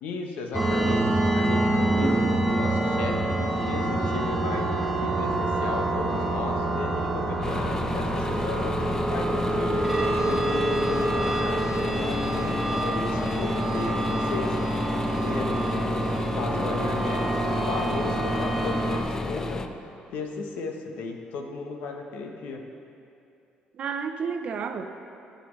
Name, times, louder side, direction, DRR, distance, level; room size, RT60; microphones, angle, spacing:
voice 1, 0.0-4.7 5.0-9.9 10.2-14.5 15.1-15.8 16.3-19.6 20.1-22.6, left 4 dB, 80° left, 3 dB, 1.0 m, -35 dB
sound 1, 0.5-19.0, right 1 dB, 5° right, 0.9 m, -26 dB
voice 2, 1.9-2.3 23.7-24.8, right 6 dB, 50° right, 7 dB, 0.6 m, -31 dB
sound 2, 7.4-19.7, left 3 dB, 20° left, 0.5 m, -32 dB
18.0 x 6.8 x 3.2 m, 2.7 s
cardioid pair, 135°, 3 cm